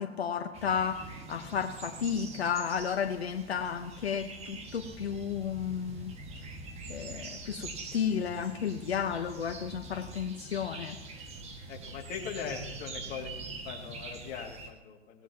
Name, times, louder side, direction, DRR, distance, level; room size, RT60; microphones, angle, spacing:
voice 1, 0.0-6.1 6.9-11.0, left 7 dB, 75° left, 6 dB, 1.2 m, -33 dB
sound 1, 0.5-14.7, right 3 dB, 20° right, 1.8 m, -44 dB
voice 2, 11.7-13.3 13.6-15.2, left 7 dB, 30° left, 0 dB, 2.6 m, -40 dB
18.0 x 15.5 x 3.0 m, 1.1 s
hypercardioid pair, 125°, 32 cm